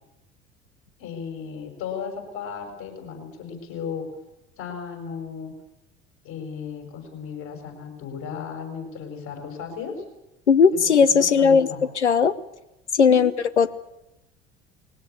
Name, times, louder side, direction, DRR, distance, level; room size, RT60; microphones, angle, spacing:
voice 1, 1.0-4.0 4.6-5.5 6.2-9.9 10.7-10.8 11.1-11.8 13.1-13.2, left 7 dB, 60° left, 4 dB, 6.8 m, -35 dB
voice 2, 10.5-11.7 12.0-12.3 12.9-13.3 13.6-13.7, left 6 dB, 85° left, 14 dB, 0.9 m, -17 dB
21.0 x 17.5 x 8.4 m, 0.91 s
figure-of-eight pair, 65°, 34 cm